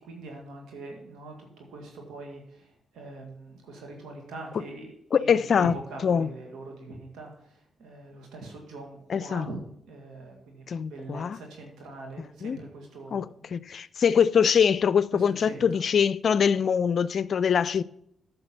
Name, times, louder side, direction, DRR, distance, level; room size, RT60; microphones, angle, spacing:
voice 1, 0.0-13.5 15.1-15.8, right 2 dB, 80° right, 2.0 m, -42 dB
voice 2, 5.1-5.7 6.0-6.3 9.1-9.5 10.7-11.4 12.4-12.6 13.1-13.3 13.5-17.8, left 7 dB, 60° left, 0.4 m, -23 dB
8.7 x 6.7 x 5.5 m
supercardioid pair, 55°, 0 cm